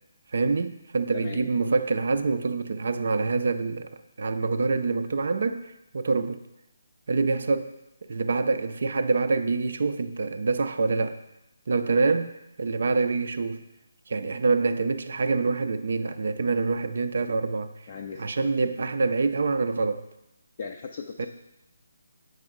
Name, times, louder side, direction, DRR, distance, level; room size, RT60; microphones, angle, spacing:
voice 1, 0.3-3.9 4.2-6.4 7.1-7.7 8.1-11.2 11.7-12.3 12.6-13.6 14.1-17.7 18.2-20.1 21.2-21.3, right 4 dB, 55° right, 0.5 m, -26 dB
voice 2, 1.1-1.4 17.9-18.2 20.6-21.3, left 5 dB, 40° left, 0.5 m, -37 dB
7.7 x 5.5 x 3.7 m
figure-of-eight pair, 145°, 0 cm